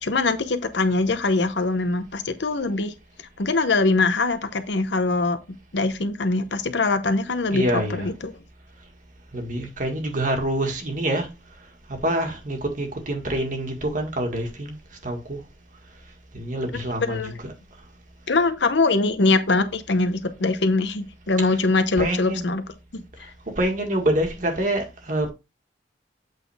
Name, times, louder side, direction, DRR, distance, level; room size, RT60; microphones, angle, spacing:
voice 1, 0.0-2.9 3.4-5.4 5.7-8.3 17.0-17.3 18.3-22.6 22.9-23.3, left 3 dB, 75° left, 0.9 m, -23 dB
voice 2, 7.5-8.1 9.3-11.3 12.0-14.8 15.0-15.4 16.3-17.5 22.0-22.5 23.6-25.3, right 1 dB, 45° right, 1.8 m, -26 dB
8.1 x 4.0 x 3.5 m
head